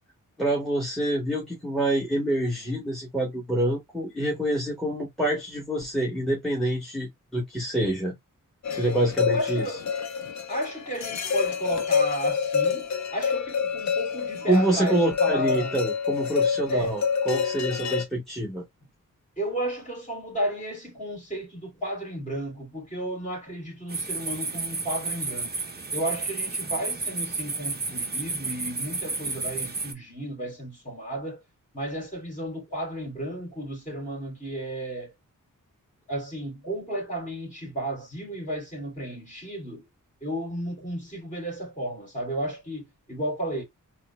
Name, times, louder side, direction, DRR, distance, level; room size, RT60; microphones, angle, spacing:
voice 1, 0.4-8.1 8.7-9.6 14.4-18.6, right 1 dB, ahead, 1.7 m, -26 dB
sound 1, 8.6-18.0, left 6 dB, 55° left, 0.7 m, -27 dB
voice 2, 9.3-9.8 10.5-15.9 16.7-17.0 17.7-18.0 19.4-25.6 25.9-31.4 31.7-35.1 36.1-39.9 40.2-43.6, right 1 dB, 25° left, 3.0 m, -33 dB
sound 2, 23.9-29.9, right 3 dB, 30° right, 0.8 m, -31 dB
4.0 x 2.4 x 3.1 m
wide cardioid pair, 95°, 33 cm